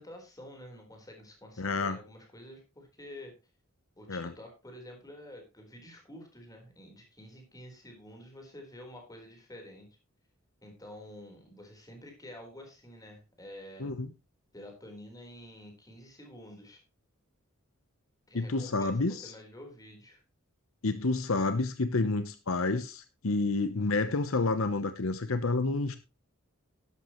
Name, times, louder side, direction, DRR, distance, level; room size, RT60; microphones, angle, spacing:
voice 1, 0.0-3.3 4.0-9.9 10.6-13.9 14.5-16.8 18.3-20.2, left 1 dB, 15° left, 2 dB, 4.1 m, -49 dB
voice 2, 1.6-2.0 4.1-4.3 13.8-14.1 18.3-19.3 20.8-26.0, left 3 dB, 70° left, 11 dB, 0.9 m, -29 dB
12.0 x 11.0 x 3.1 m, 0.28 s
head